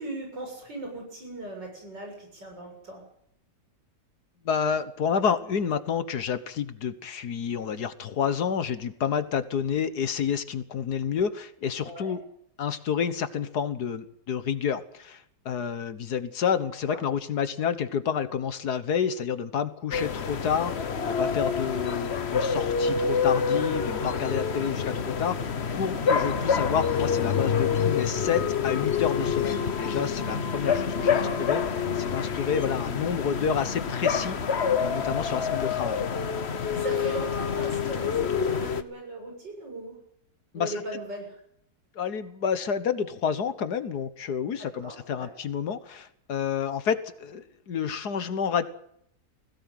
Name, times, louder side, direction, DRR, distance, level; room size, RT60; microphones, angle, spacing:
voice 1, 0.0-3.0 11.8-12.1 16.9-17.0 21.6-21.9 26.2-26.6 30.6-31.4 32.4-32.7 36.7-40.0 40.5-41.4 44.6-45.3, right 2 dB, 85° right, 1 dB, 8.0 m, -39 dB
voice 2, 4.5-12.2 12.6-31.6 32.0-36.0 40.5-40.7 42.0-48.6, left 7 dB, 65° left, 12 dB, 1.7 m, -29 dB
sound 1, 19.9-38.8, left 6 dB, 40° left, 1.2 m, -27 dB
20.5 x 17.0 x 9.1 m, 0.70 s
omnidirectional pair, 1.9 m